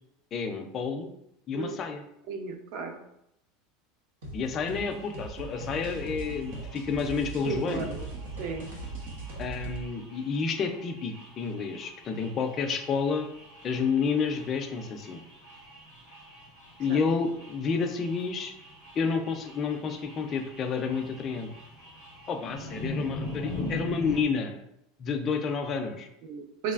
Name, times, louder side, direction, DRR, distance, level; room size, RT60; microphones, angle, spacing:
voice 1, 0.3-1.1 1.5-2.0 4.3-7.9 9.4-13.3 13.6-15.2 16.8-18.5 19.0-21.5 22.3-24.5 25.0-26.1, left 5 dB, 25° left, 4 dB, 0.3 m, -30 dB
voice 2, 2.3-3.0 7.5-8.0 8.4-8.7 16.9-17.0 26.2-26.7, right 5 dB, 45° right, 5 dB, 0.4 m, -34 dB
sound 1, 4.2-9.8, right 3 dB, 90° right, 0.9 m, -39 dB
sound 2, 4.6-24.2, left 1 dB, 70° right, 1.4 m, -43 dB
3.6 x 3.2 x 2.3 m, 0.80 s
supercardioid pair, 175°, 0 cm